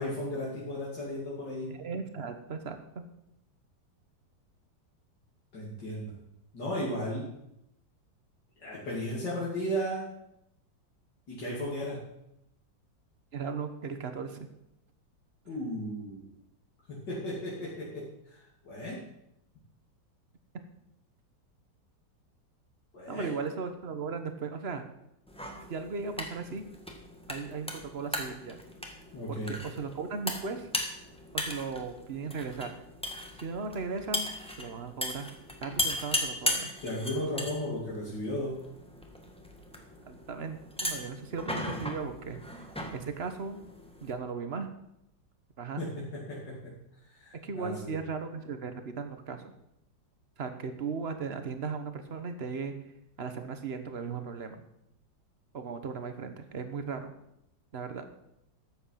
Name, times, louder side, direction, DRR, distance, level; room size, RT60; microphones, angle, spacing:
voice 1, 0.0-1.7 5.5-6.1 6.5-7.3 8.6-10.1 11.3-12.0 15.5-16.3 16.9-19.0 22.9-23.3 29.1-29.5 36.8-38.6 45.8-46.6 47.1-48.0, equal, 65° left, -7 dB, 3.5 m, -35 dB
voice 2, 1.7-3.0 13.3-14.4 23.1-24.9 25.7-26.6 27.3-28.6 29.3-30.7 31.3-32.7 33.4-34.3 34.6-35.3 35.6-36.7 40.1-42.6 42.9-43.6 44.0-44.7 45.6-45.8 47.4-49.4 50.4-52.7 53.2-54.6 55.5-57.1 57.7-58.1, right 5 dB, 40° right, 8 dB, 1.2 m, -37 dB
sound 1, 25.3-44.1, left 1 dB, 5° left, 1.4 m, -38 dB
13.0 x 8.1 x 5.7 m, 0.82 s
omnidirectional pair, 2.0 m